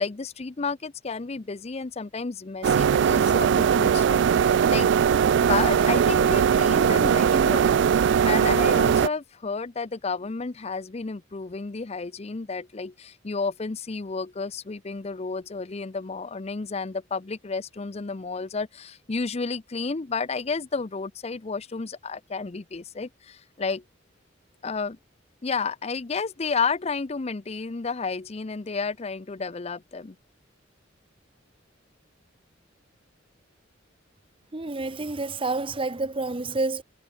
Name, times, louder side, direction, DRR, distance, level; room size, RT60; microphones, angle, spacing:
voice 1, 0.0-4.9 5.4-23.8 24.6-25.0 25.4-30.2, left 4 dB, 30° left, 0.5 m, -31 dB
sound 1, 2.6-9.1, right 7 dB, 60° right, 0.3 m, -20 dB
voice 2, 34.5-36.8, right 3 dB, 25° right, 0.9 m, -29 dB
head